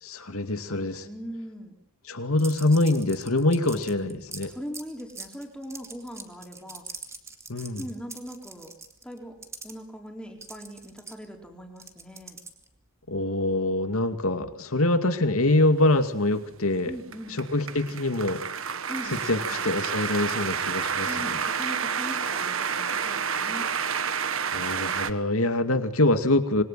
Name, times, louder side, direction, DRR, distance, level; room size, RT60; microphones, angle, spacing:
voice 1, 0.0-1.1 2.1-4.5 7.5-7.8 13.1-16.9 17.5-18.4 19.1-21.4 24.5-26.6, left 2 dB, 75° left, 8 dB, 2.4 m, -24 dB
voice 2, 1.0-1.7 4.4-6.8 7.8-8.8 9.0-9.4 9.6-12.4 16.9-17.4 18.9-19.1 19.4-19.7 21.1-23.7, equal, 5° left, 2 dB, 4.2 m, -40 dB
sound 1, 2.4-9.7 10.4-12.8, right 4 dB, 15° right, 2.2 m, -42 dB
sound 2, 15.8-25.1, right 6 dB, 65° right, 1.5 m, -30 dB
26.5 x 23.0 x 7.6 m, 0.73 s
head